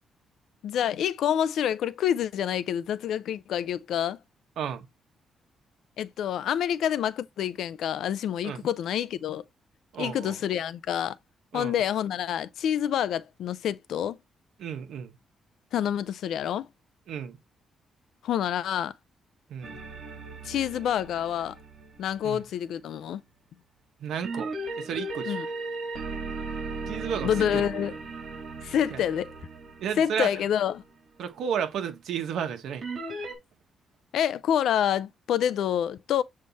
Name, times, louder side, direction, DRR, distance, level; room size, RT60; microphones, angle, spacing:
voice 1, 0.6-4.2 6.0-9.4 10.0-11.2 11.5-14.2 15.7-16.7 18.2-18.9 20.4-21.6 22.0-23.2 25.3-25.5 27.2-27.9 28.6-29.3 30.0-30.8 34.1-36.2, left 9 dB, 65° left, 0.4 m, -27 dB
voice 2, 4.6-4.9 8.4-8.7 9.9-10.4 11.5-11.7 14.6-15.1 17.1-17.4 19.5-19.8 22.2-22.4 24.0-24.5 24.8-25.4 26.9-27.8 28.9-29.0 29.8-30.3 31.2-32.8, right 8 dB, 70° right, 1.4 m, -33 dB
sound 1, 19.6-22.3 24.2-30.8 32.8-33.4, right 3 dB, 40° right, 3.5 m, -37 dB
7.6 x 3.6 x 4.1 m
cardioid pair, 175°, 0 cm